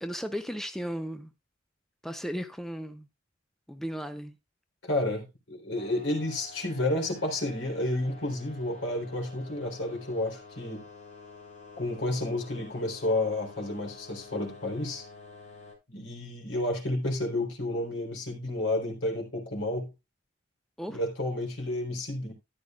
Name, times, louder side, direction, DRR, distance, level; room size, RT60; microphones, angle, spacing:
voice 1, 0.0-1.3 2.0-3.1 3.7-4.3 20.8-21.0, equal, ahead, 0.7 m, -35 dB
voice 2, 4.8-10.9 11.8-15.1 15.9-19.9 20.9-22.3, left 1 dB, 80° left, 3.9 m, -31 dB
sound 1, 5.7-15.7, left 4 dB, 40° left, 7.1 m, -49 dB
13.5 x 10.5 x 2.5 m
head